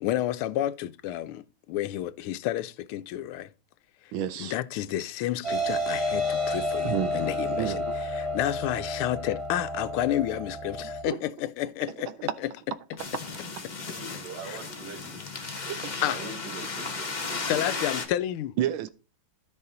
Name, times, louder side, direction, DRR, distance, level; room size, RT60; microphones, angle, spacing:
voice 1, 0.0-3.5 4.4-12.1 12.4-12.5 14.4-14.6 16.0-16.2 17.4-18.6, left 13 dB, 85° left, 1.5 m, -30 dB
voice 2, 4.1-4.5 6.8-7.2 7.6-7.8 11.1-11.2 15.5-16.0 17.4-17.5 18.6-18.9, right 11 dB, 75° right, 1.4 m, -30 dB
sound 1, 5.4-11.0, left 1 dB, 20° right, 0.8 m, -30 dB
sound 2, 13.0-18.1, left 4 dB, 25° left, 1.1 m, -35 dB
voice 3, 13.7-15.2 16.0-17.7, right 3 dB, 55° right, 2.1 m, -42 dB
13.0 x 4.9 x 3.9 m
omnidirectional pair, 2.4 m